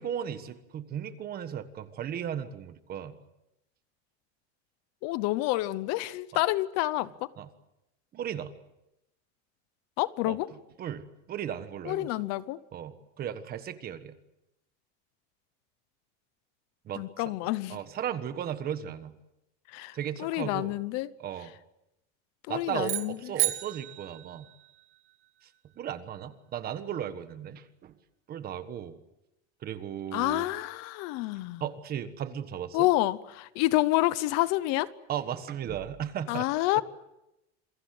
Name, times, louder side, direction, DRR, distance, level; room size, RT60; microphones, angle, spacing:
voice 1, 0.0-3.2 7.4-7.5 8.1-8.5 10.2-10.4 10.8-12.2 12.7-14.2 16.8-17.0 17.7-19.2 19.9-20.7 21.2-21.5 22.5-24.5 25.4-25.5 25.8-27.9 28.3-29.0 29.6-30.4 31.6-32.9 35.1-36.5, right 9 dB, 30° right, 1.4 m, -36 dB
voice 2, 5.0-7.1 10.0-10.5 11.9-12.6 17.0-17.8 19.7-21.1 22.5-23.2 30.1-31.6 32.7-34.9 36.3-36.8, left 18 dB, 50° left, 0.9 m, -28 dB
sound 1, 22.8-25.1, right 20 dB, 80° right, 2.8 m, -33 dB
27.5 x 23.0 x 7.8 m
cardioid pair, 175°, 33 cm